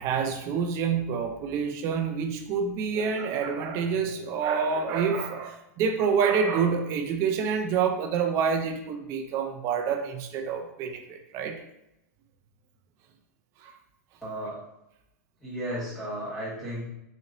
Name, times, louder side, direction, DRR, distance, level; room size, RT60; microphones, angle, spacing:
voice 1, 0.0-11.6, right 6 dB, 30° right, 5 dB, 0.4 m, -27 dB
voice 2, 14.2-14.6 15.4-16.9, equal, ahead, -10 dB, 1.4 m, -34 dB
4.1 x 2.9 x 2.6 m, 0.88 s
supercardioid pair, 155°, 9 cm